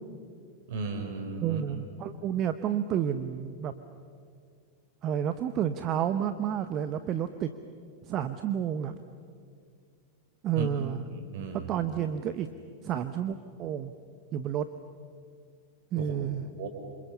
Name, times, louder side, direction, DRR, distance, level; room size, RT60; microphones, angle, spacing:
voice 1, 0.7-1.6 10.6-10.7 11.1-11.7 16.0-16.1 16.6-16.7, right 4 dB, 55° right, 6 dB, 4.3 m, -35 dB
voice 2, 1.4-3.7 5.0-7.5 8.1-8.9 10.4-11.0 11.5-12.5 12.8-13.9 14.3-14.7 15.9-16.5, right 9 dB, 35° right, 11 dB, 0.9 m, -30 dB
27.5 x 27.0 x 7.1 m, 2.1 s
figure-of-eight pair, 90°, 0 cm